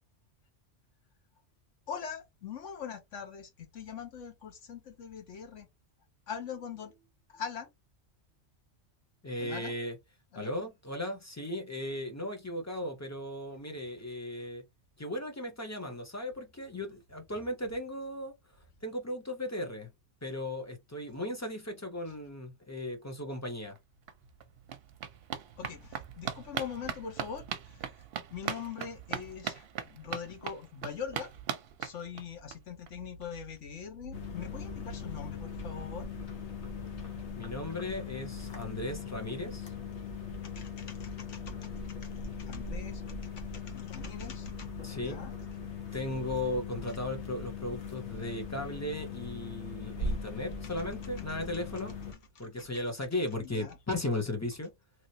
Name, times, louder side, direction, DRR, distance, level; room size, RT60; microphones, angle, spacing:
voice 1, 1.9-5.7 6.3-7.7 9.4-9.7 10.3-10.5 25.6-28.0 28.3-31.3 31.8-36.1 40.4-44.7 45.0-45.3 46.8-47.0 50.6-50.7 52.6-52.7 53.4-53.8, left 7 dB, 90° left, 1.3 m, -42 dB
voice 2, 9.2-10.0 10.3-14.6 15.0-18.3 18.8-19.9 20.2-23.8 37.4-39.7 44.8-45.2 45.9-52.0 52.4-54.7, left 1 dB, 15° left, 0.6 m, -36 dB
sound 1, 23.8-23.9 24.1-32.6 32.9-33.0 33.2-33.3 33.6-33.7, right 8 dB, 65° right, 0.7 m, -40 dB
sound 2, 34.1-52.1, left 4 dB, 70° left, 1.3 m, -40 dB
3.0 x 2.9 x 2.7 m
omnidirectional pair, 1.2 m